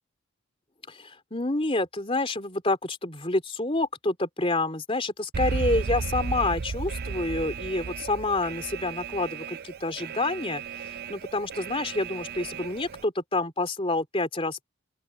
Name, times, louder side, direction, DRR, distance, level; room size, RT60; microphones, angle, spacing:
voice 1, 0.9-14.6, left 2 dB, 25° left, 3.5 m, -28 dB
Alarm, 5.3-13.0, right 5 dB, 45° right, 0.5 m, -34 dB
open air
head